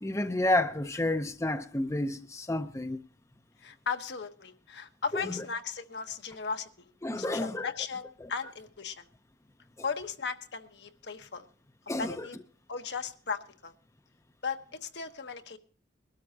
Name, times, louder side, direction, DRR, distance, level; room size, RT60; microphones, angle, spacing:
voice 1, 0.0-3.0 5.1-5.4 7.0-7.7 8.2-8.3 11.9-12.3, left 1 dB, 15° left, 0.6 m, -30 dB
voice 2, 3.6-6.9 7.2-9.0 9.8-11.5 12.0-12.4 12.7-13.7 14.4-15.6, left 5 dB, 70° left, 1.2 m, -36 dB
22.5 x 12.5 x 2.8 m
head